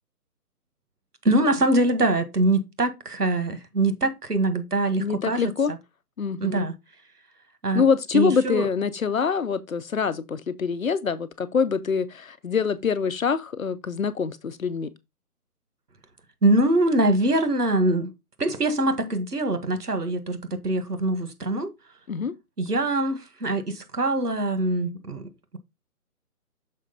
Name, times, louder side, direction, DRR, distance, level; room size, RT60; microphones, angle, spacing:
voice 1, 1.2-5.8 6.4-6.7 7.6-7.8 8.1-8.7 16.4-18.1 18.4-21.7 22.6-25.6, right 2 dB, 80° right, 1.7 m, -23 dB
voice 2, 5.0-5.7 6.2-6.7 7.7-14.9 22.1-22.3, left 6 dB, 60° left, 0.9 m, -25 dB
6.6 x 4.9 x 4.0 m
figure-of-eight pair, 150°, 46 cm